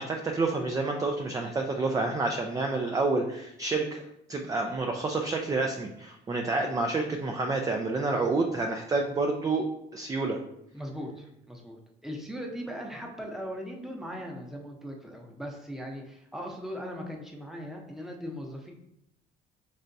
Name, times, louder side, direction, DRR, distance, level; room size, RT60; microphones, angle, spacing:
voice 1, 0.0-4.0 4.3-9.7 9.9-10.4, right 3 dB, 20° right, 3 dB, 0.4 m, -29 dB
voice 2, 10.7-11.8 12.0-18.7, equal, ahead, 0 dB, 0.8 m, -39 dB
5.0 x 3.3 x 2.7 m, 0.80 s
cardioid pair, 110°, 17 cm